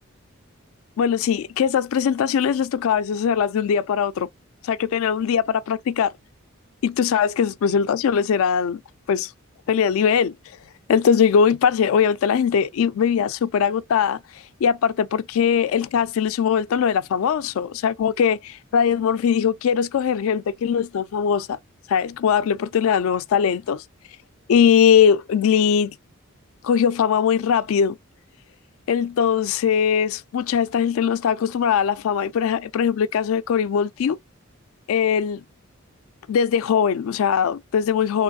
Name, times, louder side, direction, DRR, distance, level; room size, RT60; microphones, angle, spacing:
voice 1, 1.0-4.3 4.6-6.1 6.8-8.8 9.1-9.3 9.7-10.3 10.9-14.2 14.6-21.6 21.9-23.8 24.5-25.9 26.6-28.0 28.9-34.2 34.9-35.4 36.3-38.2, left 7 dB, 70° left, 0.3 m, -20 dB
3.1 x 3.0 x 2.6 m
head